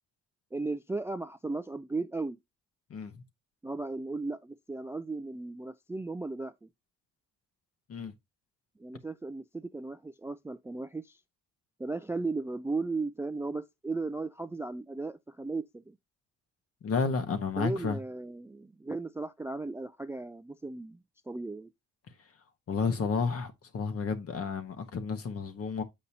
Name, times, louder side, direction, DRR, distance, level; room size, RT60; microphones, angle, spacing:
voice 1, 0.5-2.4 3.6-6.7 8.8-11.2 11.8-16.0 17.6-21.0 21.3-21.7, right 3 dB, 10° right, 0.3 m, -36 dB
voice 2, 2.9-3.2 7.9-8.1 16.8-18.0 22.7-25.8, left 5 dB, 50° left, 1.3 m, -31 dB
8.3 x 5.3 x 2.8 m
cardioid pair, 90°, 30 cm